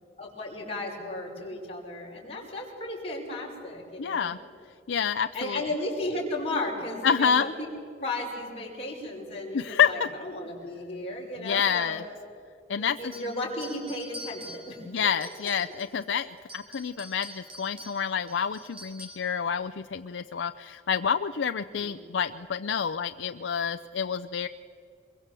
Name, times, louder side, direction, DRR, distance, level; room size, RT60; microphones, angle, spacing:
voice 1, 0.2-4.3 5.3-7.7 8.0-12.0 12.8-14.8 21.6-22.0, left 2 dB, 35° left, -3 dB, 5.9 m, -34 dB
voice 2, 4.0-4.4 4.9-5.6 7.0-7.5 9.5-10.1 11.4-12.0 12.7-13.1 14.9-24.5, left 7 dB, 85° left, 9 dB, 0.5 m, -28 dB
sound 1, 13.1-16.0 16.4-19.4, equal, 30° right, 2.8 m, -46 dB
23.0 x 23.0 x 7.5 m, 2.4 s
head